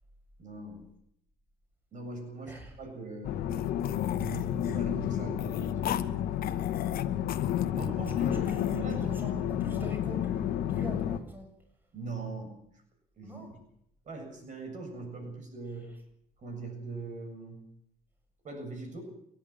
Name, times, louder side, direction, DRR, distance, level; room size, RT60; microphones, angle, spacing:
voice 1, 0.4-0.8 1.9-3.4 4.1-6.1 6.4-6.7 7.8-9.3 11.9-12.5 13.2-13.5 14.0-15.9 16.4-17.6 18.4-19.0, right 2 dB, 45° right, 4 dB, 7.5 m, -41 dB
sound 1, 3.2-11.2, left 10 dB, 85° left, 1.8 m, -31 dB
sound 2, 3.5-6.1 6.4-8.8, left 11 dB, 60° left, 1.3 m, -40 dB
voice 2, 7.9-8.6 9.0-11.5 13.2-13.5, left 1 dB, 10° right, 3 dB, 7.7 m, -44 dB
29.0 x 11.5 x 8.9 m, 0.75 s
cardioid pair, 110°, 17 cm